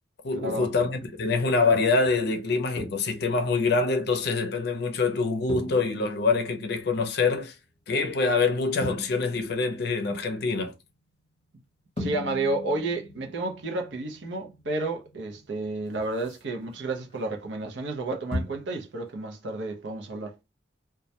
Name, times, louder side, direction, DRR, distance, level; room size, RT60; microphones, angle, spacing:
voice 1, 0.2-7.5 7.9-10.7, left 4 dB, 60° left, 0.5 m, -25 dB
sound 1, 0.8-1.2 2.0-2.2 2.8-3.5 5.5-7.6 8.8-10.7 12.0-17.2 17.5-17.7 18.3-18.7 19.0-19.1, left 1 dB, 30° left, 0.8 m, -40 dB
voice 2, 12.0-20.4, right 2 dB, 75° right, 0.6 m, -31 dB
2.2 x 2.1 x 2.7 m
head